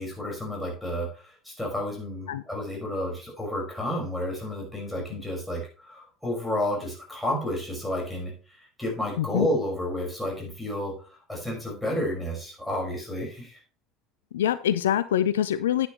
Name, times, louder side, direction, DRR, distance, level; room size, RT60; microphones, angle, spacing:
voice 1, 0.0-13.6, left 1 dB, 5° left, -2 dB, 5.7 m, -31 dB
voice 2, 14.3-15.9, left 10 dB, 75° left, 14 dB, 0.4 m, -24 dB
9.6 x 9.1 x 3.2 m, 0.37 s
figure-of-eight pair, 65°, 0 cm